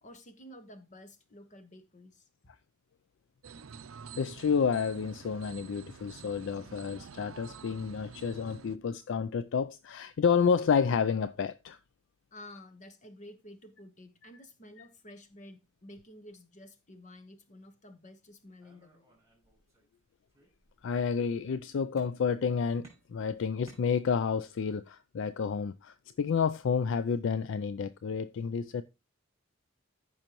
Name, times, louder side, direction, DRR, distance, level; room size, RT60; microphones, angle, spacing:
voice 1, 0.0-2.3 12.3-19.2, left 1 dB, 35° left, 1.1 m, -51 dB
sound 1, 3.4-8.8, right 6 dB, 75° right, 0.5 m, -49 dB
voice 2, 4.2-11.8 20.8-28.8, left 6 dB, 60° left, 0.4 m, -30 dB
sound 2, 18.6-20.0 20.3-21.0 22.0-22.5 22.8-24.4, right 2 dB, 15° right, 4.3 m, -60 dB
14.0 x 5.5 x 3.0 m
head